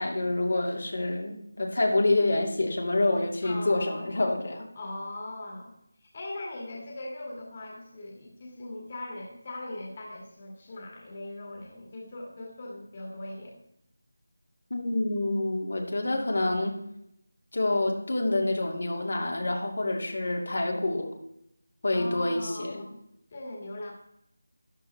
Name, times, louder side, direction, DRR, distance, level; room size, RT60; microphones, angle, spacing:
voice 1, 0.0-4.7 14.7-16.8 17.5-21.1 21.8-22.8, left 2 dB, 65° left, 1 dB, 2.4 m, -27 dB
voice 2, 3.4-4.1 4.7-5.8 6.1-13.6 21.9-23.0 23.3-23.9, left 1 dB, 30° left, -1 dB, 2.1 m, -40 dB
13.0 x 10.5 x 3.3 m, 0.78 s
figure-of-eight pair, 170°, 0 cm